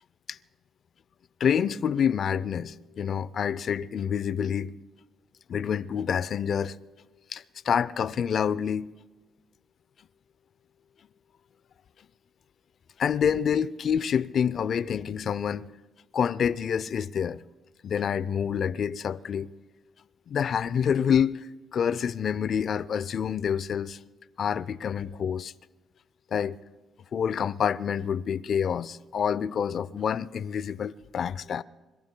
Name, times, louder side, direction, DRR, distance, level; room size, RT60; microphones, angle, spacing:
voice 1, 1.4-4.7 5.5-6.8 7.3-8.9 13.0-15.7 16.1-17.4 17.8-19.5 20.3-24.0 24.4-25.5 26.3-26.6 27.1-31.6, left 8 dB, 55° left, 0.4 m, -27 dB
26.5 x 22.0 x 2.2 m
cardioid pair, 90°, 0 cm